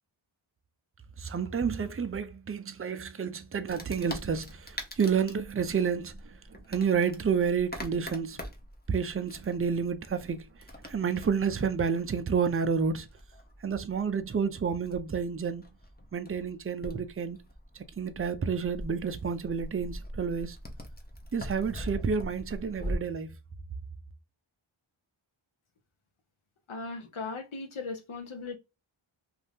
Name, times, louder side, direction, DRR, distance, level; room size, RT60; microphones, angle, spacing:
voice 1, 1.2-8.4 8.9-13.1 13.6-15.7 16.1-17.4 17.7-20.6 21.3-23.3, right 6 dB, 30° right, 0.4 m, -30 dB
Wood, 3.7-23.0, equal, 20° left, 0.7 m, -43 dB
voice 2, 26.7-28.6, left 3 dB, 75° left, 0.8 m, -38 dB
2.6 x 2.5 x 3.4 m
wide cardioid pair, 60°, 49 cm